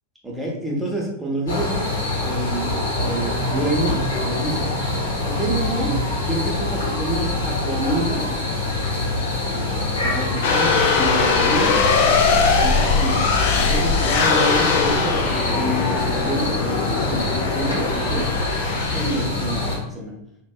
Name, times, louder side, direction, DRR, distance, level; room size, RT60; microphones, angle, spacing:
voice 1, 0.2-1.9 2.2-4.7 5.2-8.3 9.5-11.9 12.6-15.2 15.5-17.3 17.5-18.3 18.9-20.2, right 1 dB, 5° right, -4 dB, 0.7 m, -28 dB
sound 1, 1.5-19.8, left 2 dB, 65° left, 0.8 m, -25 dB
sound 2, 10.4-19.3, left 4 dB, 50° left, 0.3 m, -21 dB
2.5 x 2.2 x 2.3 m, 0.78 s
figure-of-eight pair, 90°, 0 cm